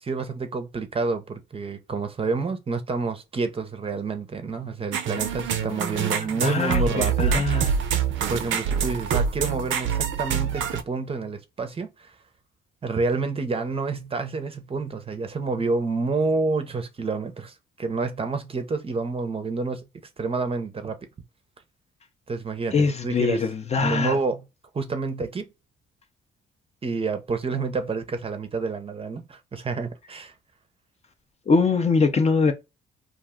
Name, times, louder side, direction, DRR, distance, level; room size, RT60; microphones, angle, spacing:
voice 1, 0.0-7.7 8.2-12.1 12.8-19.9 20.2-21.0 22.3-23.5 23.8-24.5 24.7-25.5 26.8-30.3, right 4 dB, 30° right, 0.6 m, -29 dB
sound 1, 4.9-10.8, right 7 dB, 75° right, 0.5 m, -25 dB
voice 2, 6.4-7.7 22.7-24.2 31.5-32.5, left 4 dB, 35° left, 0.5 m, -22 dB
2.5 x 2.2 x 3.5 m
cardioid pair, 90°, 20 cm